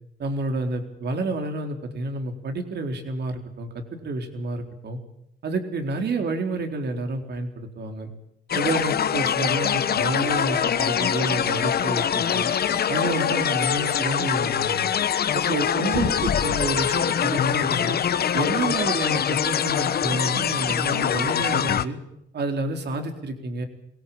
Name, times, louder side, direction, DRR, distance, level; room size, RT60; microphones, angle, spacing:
voice 1, 0.2-5.0 5.4-8.1 8.5-12.5 12.9-14.9 15.3-18.0 18.3-22.0 22.3-23.7, right 2 dB, 55° right, 5 dB, 4.0 m, -29 dB
sound 1, 8.5-21.8, left 8 dB, 50° left, 1.1 m, -24 dB
23.0 x 18.0 x 8.7 m, 0.80 s
cardioid pair, 90°, 20 cm